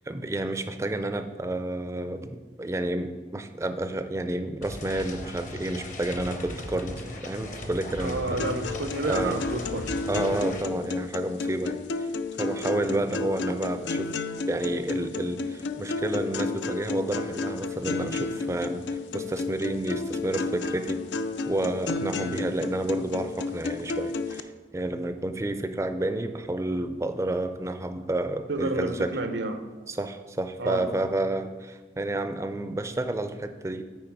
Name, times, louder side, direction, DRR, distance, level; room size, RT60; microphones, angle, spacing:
voice 1, 0.1-8.4 9.0-9.4 10.1-12.1 12.4-21.0 21.5-29.1 29.9-33.8, right 1 dB, 15° right, 9 dB, 0.4 m, -30 dB
sound 1, 4.6-10.6, left 1 dB, 45° left, 0.8 m, -38 dB
voice 2, 8.0-9.9 28.5-29.6 30.6-30.9, right 2 dB, 90° right, 8 dB, 0.7 m, -30 dB
sound 2, 8.4-24.4, left 3 dB, 90° left, 0.4 m, -32 dB
8.9 x 4.6 x 4.5 m, 1.3 s
head